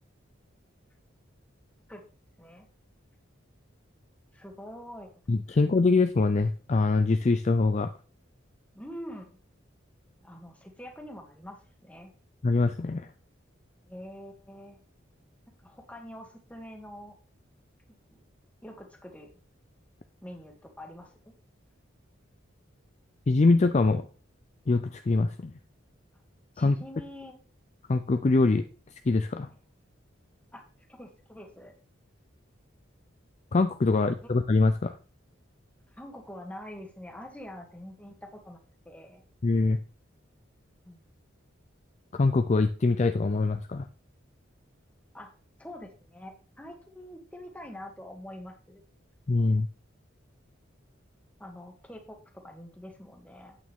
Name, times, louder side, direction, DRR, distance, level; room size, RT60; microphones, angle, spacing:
voice 1, 4.3-5.1 5.5-5.6 8.7-9.3 10.2-12.1 13.9-14.8 15.5-17.2 17.9-18.2 18.6-19.3 20.2-21.3 26.5-27.3 30.5-30.6 30.9-31.7 35.9-38.6 38.8-39.2 40.8-41.0 45.1-45.3 45.6-48.8 51.4-53.6, left 1 dB, 5° left, 3 dB, 1.7 m, -45 dB
voice 2, 5.3-7.9 12.4-13.1 23.3-24.1 24.7-25.5 26.6-26.8 27.9-28.7 29.1-29.5 33.5-35.0 39.4-39.8 42.1-43.9 49.3-49.7, left 3 dB, 35° left, 9 dB, 0.4 m, -23 dB
8.9 x 8.6 x 3.6 m, 0.38 s
head